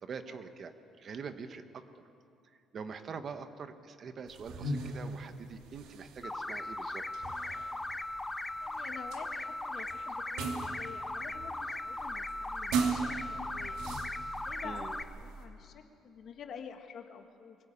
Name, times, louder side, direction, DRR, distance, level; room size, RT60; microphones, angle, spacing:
voice 1, 0.0-1.9 2.7-7.0 14.6-14.9, right 5 dB, 40° right, 9 dB, 1.0 m, -44 dB
sound 1, 4.3-15.5, right 4 dB, 80° right, 2.4 m, -39 dB
sound 2, 6.2-15.0, left 2 dB, 10° left, 0.7 m, -38 dB
voice 2, 8.6-13.8 14.4-17.6, left 6 dB, 50° left, 6 dB, 1.6 m, -49 dB
23.0 x 16.5 x 8.7 m, 2.6 s
cardioid pair, 145°, 0 cm